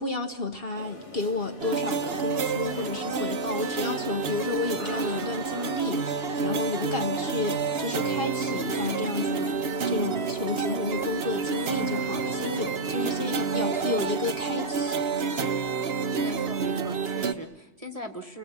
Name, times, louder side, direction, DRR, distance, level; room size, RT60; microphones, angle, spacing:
voice 1, 0.0-9.6 9.9-15.1, left 3 dB, 40° left, 5 dB, 1.5 m, -31 dB
sound 1, 0.7-14.3, left 1 dB, 20° left, 2.2 m, -43 dB
sound 2, 1.6-17.3, right 5 dB, 45° right, 1.2 m, -29 dB
voice 2, 13.0-14.0 16.2-18.4, right 1 dB, 25° right, 7 dB, 1.5 m, -41 dB
30.0 x 20.0 x 8.2 m, 0.96 s
omnidirectional pair, 1.6 m